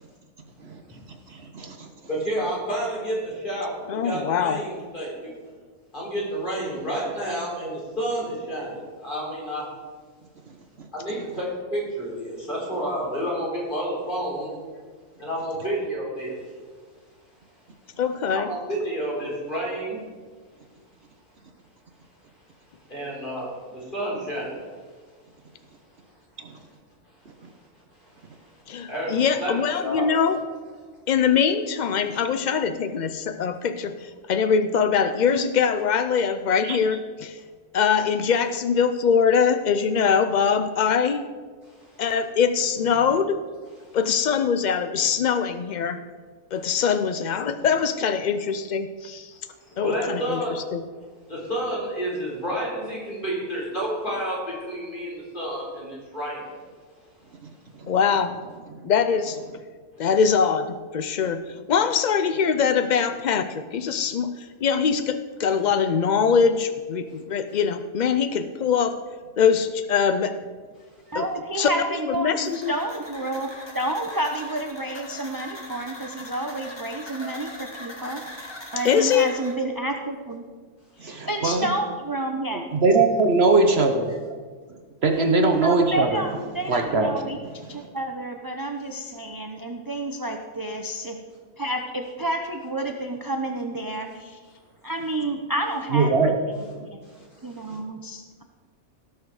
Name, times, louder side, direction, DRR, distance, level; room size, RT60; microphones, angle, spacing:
voice 1, 1.1-1.9 10.8-10.9 26.4-26.6 36.6-36.8 57.8-57.9 58.8-58.9 81.0-81.7 82.5-84.2 85.0-86.4 86.7-87.9 95.9-96.3, right 3 dB, 55° right, 4 dB, 1.1 m, -22 dB
voice 2, 2.1-5.3 5.9-9.7 10.9-14.6 15.2-16.5 18.3-20.0 22.9-24.6 27.9-28.6 28.9-30.1 41.6-42.0 43.8-44.0 49.8-50.6 51.3-56.5 81.2-81.3 94.1-94.2 97.0-97.8, right 1 dB, 35° left, -5 dB, 4.3 m, -30 dB
voice 3, 3.9-4.6 18.0-18.5 28.7-30.4 31.1-37.4 37.7-41.2 42.0-43.4 43.9-46.0 46.5-49.3 49.8-50.4 50.7-50.8 57.9-58.4 58.8-59.4 60.0-61.4 61.7-69.0 69.4-70.4 71.1-71.3 71.5-71.7 72.0-72.7 78.8-79.3, left 6 dB, 80° left, 10 dB, 0.4 m, -23 dB
voice 4, 71.1-80.4 81.0-82.6 85.6-87.4 87.7-91.2 91.6-94.4 94.8-96.1 96.8-97.0 97.4-98.4, right 1 dB, 25° right, 3 dB, 0.5 m, -30 dB
sound 1, 72.5-79.5, left 1 dB, 20° left, 1.6 m, -41 dB
17.5 x 6.5 x 4.8 m, 1.5 s
omnidirectional pair, 1.4 m